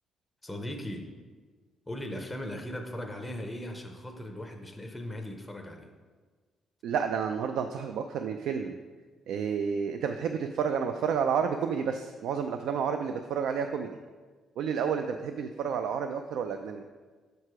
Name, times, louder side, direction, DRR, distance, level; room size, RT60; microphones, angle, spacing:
voice 1, 0.4-1.1 1.9-5.9, left 1 dB, 5° left, 3 dB, 0.5 m, -38 dB
voice 2, 6.8-8.8 9.3-14.0 14.6-16.9, right 7 dB, 70° right, 7 dB, 0.3 m, -30 dB
6.5 x 4.7 x 4.8 m, 1.4 s
cardioid pair, 175°, 0 cm